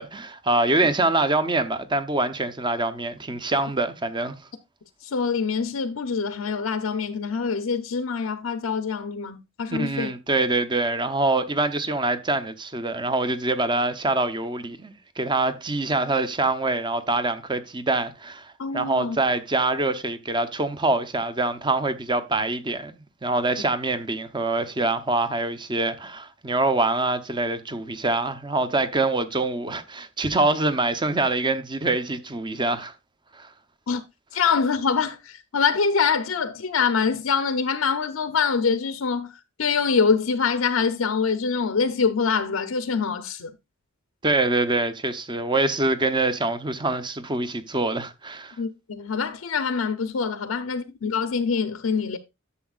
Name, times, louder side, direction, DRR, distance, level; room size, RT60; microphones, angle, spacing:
voice 1, 0.0-4.4 9.8-32.9 33.3-33.5 44.2-48.6, right 2 dB, 20° right, 0.7 m, -25 dB
voice 2, 5.0-10.1 18.6-19.2 33.9-34.0 34.3-43.5 48.6-52.2, left 5 dB, 80° left, 0.6 m, -25 dB
11.0 x 7.0 x 2.4 m
head